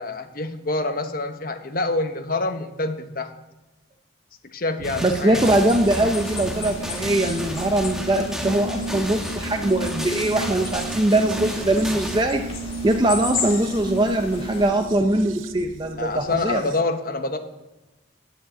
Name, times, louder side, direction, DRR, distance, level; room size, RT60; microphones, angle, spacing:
voice 1, 0.0-3.3 4.5-5.4 5.9-6.0 16.0-17.4, left 2 dB, 45° left, 6 dB, 1.1 m, -26 dB
sound 1, 4.8-12.2, equal, ahead, 1.3 m, -33 dB
sound 2, 4.8-16.8, right 3 dB, 85° right, 0.7 m, -35 dB
voice 2, 5.0-12.4 12.8-16.6, right 1 dB, 25° right, 5 dB, 0.6 m, -21 dB
sound 3, 5.4-14.7, left 4 dB, 30° left, 2.2 m, -35 dB
10.0 x 7.3 x 8.2 m, 1.1 s
head